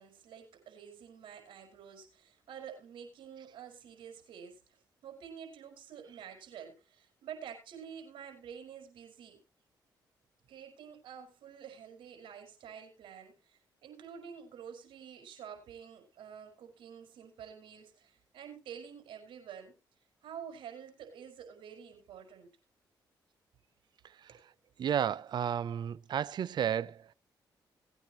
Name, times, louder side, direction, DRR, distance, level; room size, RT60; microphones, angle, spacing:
voice 1, 0.0-4.6 5.0-9.4 10.5-19.8 20.2-22.5 24.3-24.4, right 8 dB, 80° right, 5.2 m, -49 dB
voice 2, 24.8-27.1, right 9 dB, 60° right, 0.6 m, -32 dB
19.0 x 9.1 x 3.0 m
cardioid pair, 65°, 8 cm